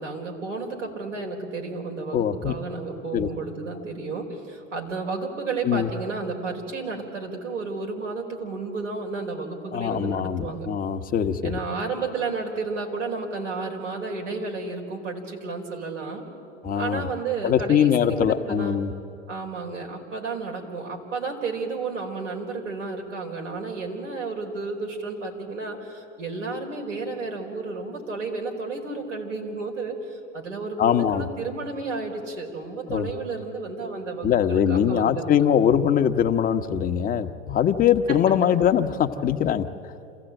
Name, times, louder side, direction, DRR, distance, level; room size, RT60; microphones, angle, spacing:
voice 1, 0.0-10.7 11.4-16.3 16.7-18.9 19.3-35.4 38.1-38.2, right 3 dB, 90° right, 0 dB, 4.4 m, -32 dB
voice 2, 2.1-2.5 3.1-3.3 5.6-5.9 9.7-11.5 16.6-17.1 17.4-18.9 30.8-31.3 32.9-33.1 34.2-39.7, left 9 dB, 25° left, 6 dB, 1.0 m, -22 dB
27.0 x 15.5 x 9.0 m, 2.7 s
hypercardioid pair, 115°, 36 cm